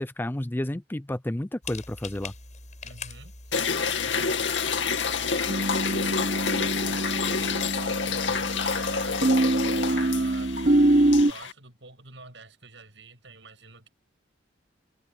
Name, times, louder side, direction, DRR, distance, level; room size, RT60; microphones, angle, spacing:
voice 1, 0.0-2.3, left 1 dB, 10° left, 0.5 m, -31 dB
sound 1, 1.6-11.2, left 2 dB, 40° left, 5.8 m, -43 dB
voice 2, 2.8-6.0 6.5-9.2 9.8-10.5 11.2-13.9, right 3 dB, 70° right, 7.6 m, -47 dB
sound 2, 3.5-11.5, left 5 dB, 75° left, 2.4 m, -28 dB
sound 3, 5.5-11.3, right 1 dB, 45° right, 0.9 m, -24 dB
head